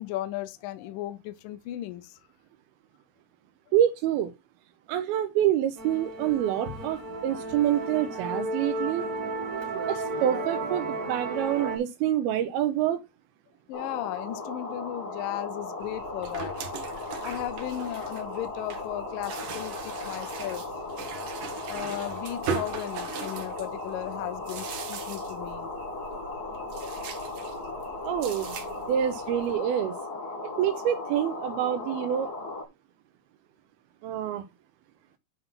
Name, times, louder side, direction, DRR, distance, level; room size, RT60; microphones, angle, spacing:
voice 1, 0.0-2.2 13.7-16.6 17.2-20.7 21.7-25.7, left 14 dB, 80° left, 2.0 m, -36 dB
voice 2, 3.7-4.3 4.9-9.1 9.8-13.0 28.0-28.6 28.9-29.9 30.6-32.3 34.0-34.5, right 11 dB, 80° right, 2.6 m, -27 dB
Musical instrument, 5.8-11.8, right 2 dB, 45° right, 1.2 m, -33 dB
sound 1, 13.7-32.6, left 2 dB, 30° left, 2.0 m, -37 dB
sound 2, 15.8-29.5, right 6 dB, 65° right, 2.7 m, -40 dB
9.7 x 4.0 x 5.5 m
omnidirectional pair, 4.5 m